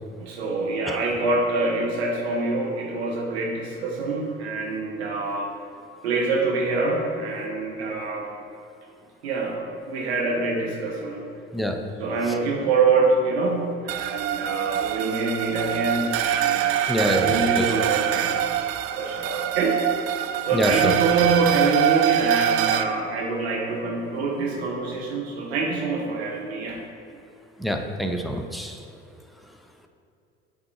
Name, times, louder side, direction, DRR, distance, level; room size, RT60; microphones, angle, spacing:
voice 1, 0.2-5.5 6.0-8.3 9.2-11.3 12.0-18.6 18.9-19.8 20.4-26.8, right 3 dB, 80° right, 0 dB, 1.0 m, -25 dB
sound 1, 13.9-22.8, right 11 dB, 50° right, 0.4 m, -24 dB
voice 2, 16.9-17.7 20.5-20.9 27.6-28.8, equal, ahead, 4 dB, 0.6 m, -26 dB
7.8 x 3.6 x 4.6 m, 2.7 s
hypercardioid pair, 60°, 31 cm